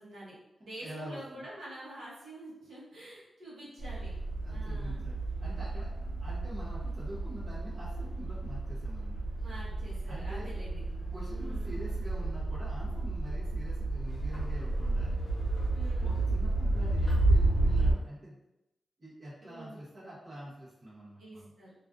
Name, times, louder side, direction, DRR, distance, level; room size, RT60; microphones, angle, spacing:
voice 1, 0.0-4.1 4.5-5.0 6.0-6.2 9.4-10.8 11.3-11.8 15.7-16.2 19.4-19.8 21.2-21.7, right 1 dB, 70° right, -7 dB, 0.8 m, -47 dB
voice 2, 0.8-1.4 4.4-9.2 10.1-10.5 11.0-15.1 16.0-18.4 19.0-21.5, right 1 dB, 30° right, -8 dB, 0.7 m, -45 dB
sound 1, 3.8-17.9, right 2 dB, 75° left, 0.9 m, -31 dB
2.4 x 2.4 x 2.3 m, 0.93 s
wide cardioid pair, 165°, 0 cm